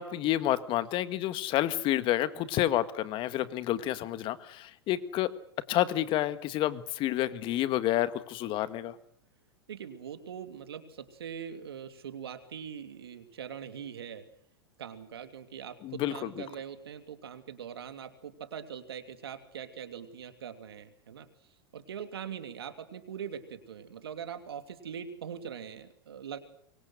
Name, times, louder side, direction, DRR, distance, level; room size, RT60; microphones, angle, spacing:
voice 1, 0.0-5.4 5.7-9.0 15.8-16.4, left 13 dB, 40° left, 13 dB, 1.7 m, -29 dB
voice 2, 9.7-14.3 14.8-21.3 21.7-26.4, right 8 dB, 80° right, 8 dB, 2.9 m, -42 dB
25.5 x 23.0 x 6.4 m, 0.65 s
hypercardioid pair, 105°, 13 cm